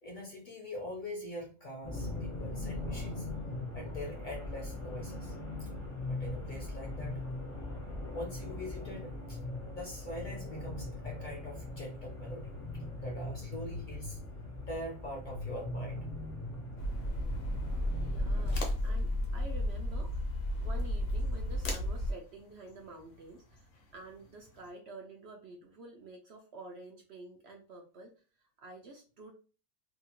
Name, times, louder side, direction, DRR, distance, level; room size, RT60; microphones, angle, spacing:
voice 1, 0.0-3.3 3.7-5.7 6.1-7.2 8.1-9.4 9.7-14.2 14.7-16.1 18.5-18.6, left 1 dB, 45° left, -1 dB, 0.7 m, -43 dB
sound 1, 1.8-18.6, left 2 dB, 20° left, 0.4 m, -40 dB
sound 2, 16.8-22.1, left 1 dB, 85° left, 1.1 m, -33 dB
voice 2, 18.0-29.3, right 3 dB, 65° right, 2 dB, 0.7 m, -50 dB
sound 3, 18.3-24.7, left 3 dB, 65° left, 1.0 m, -48 dB
2.8 x 2.3 x 2.8 m, 0.35 s
omnidirectional pair, 1.4 m